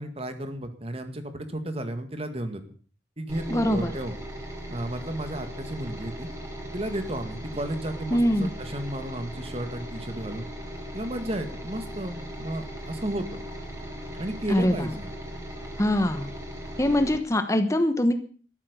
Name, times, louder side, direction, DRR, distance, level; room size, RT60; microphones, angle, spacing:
voice 1, 0.0-2.6 3.2-4.1 4.7-6.3 6.7-10.5 10.9-13.4 14.1-15.1, right 1 dB, 35° right, 8 dB, 2.1 m, -33 dB
sound 1, 3.3-17.2, equal, 15° right, 4.0 m, -38 dB
voice 2, 3.5-3.9 8.1-8.5 14.5-14.9 15.8-16.3 16.8-18.1, left 1 dB, 15° left, 8 dB, 1.1 m, -23 dB
13.5 x 12.0 x 7.0 m, 0.43 s
head